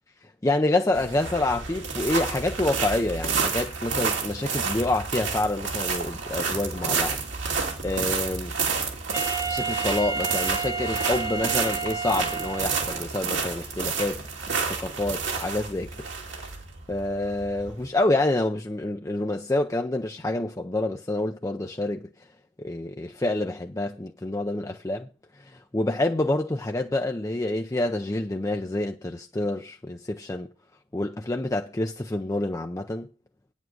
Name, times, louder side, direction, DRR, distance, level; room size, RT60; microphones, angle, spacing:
voice 1, 0.4-7.2 7.4-7.6 7.8-8.5 9.5-14.2 14.5-15.9 16.3-16.5 16.9-22.1 22.6-25.1 25.4-30.5 30.9-33.1, left 2 dB, 15° left, 0.6 m, -27 dB
sound 1, 0.9-17.8, right 5 dB, 75° right, 2.6 m, -30 dB
Wind instrument woodwind instrument, 9.1-13.1, right 4 dB, 20° right, 0.9 m, -31 dB
9.3 x 7.3 x 6.3 m
head